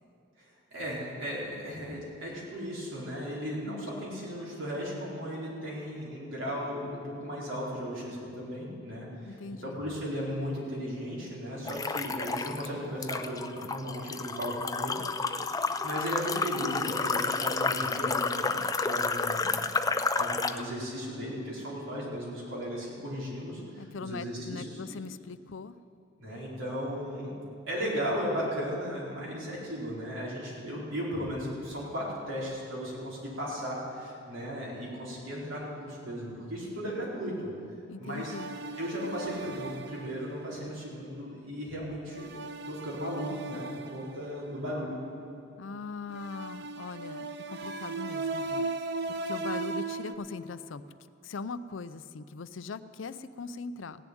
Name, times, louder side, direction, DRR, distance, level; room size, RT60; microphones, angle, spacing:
voice 1, 0.7-15.3 15.8-19.6 20.2-24.8 26.2-27.3 27.7-37.5 38.0-38.3 38.8-42.3 42.7-45.0, equal, 75° right, -6 dB, 4.5 m, -36 dB
voice 2, 3.7-4.1 9.3-9.8 23.8-25.8 37.9-38.5 45.6-48.7 49.1-50.8 51.2-54.0, left 4 dB, 70° left, 14 dB, 0.5 m, -40 dB
sound 1, 11.7-12.7 13.0-20.6, left 4 dB, 20° left, 0.4 m, -30 dB
sound 2, 38.1-40.6 42.1-44.5 46.1-50.2, right 3 dB, 60° right, 0.7 m, -37 dB
16.5 x 7.1 x 9.3 m, 2.6 s
head